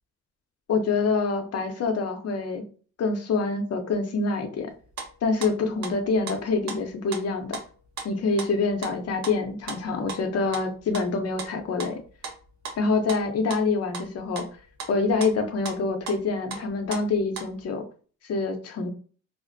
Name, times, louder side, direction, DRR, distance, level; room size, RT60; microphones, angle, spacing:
voice 1, 0.7-2.6 3.0-4.7 5.2-7.6 8.0-12.0 12.8-14.5 14.9-17.8 18.2-18.9, left 4 dB, 55° left, 6 dB, 0.7 m, -26 dB
sound 1, 4.9-5.5 5.8-6.4 6.7-6.8 7.1-7.2 7.5-7.7 8.0-8.1 8.4-8.5 8.8-9.0 9.2-9.8 10.1-11.5 11.8-12.4 12.6-12.8 13.1-13.7 13.9-14.1 14.4-15.3 15.7-15.8 16.1-16.2 16.5-17.0 17.4-17.5, right 5 dB, 65° right, 0.8 m, -36 dB
2.4 x 2.1 x 2.5 m, 0.39 s
cardioid pair, 90°, 30 cm